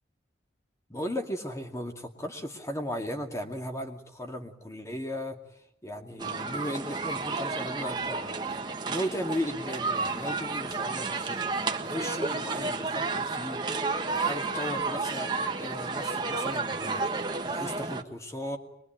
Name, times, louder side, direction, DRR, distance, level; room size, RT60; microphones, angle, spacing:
voice 1, 0.9-5.4 5.8-8.6 8.9-13.6 14.1-18.6, equal, 15° left, 4 dB, 2.4 m, -36 dB
sound 1, 6.2-18.0, right 3 dB, 25° right, 1.5 m, -31 dB
24.0 x 22.5 x 9.1 m, 0.83 s
head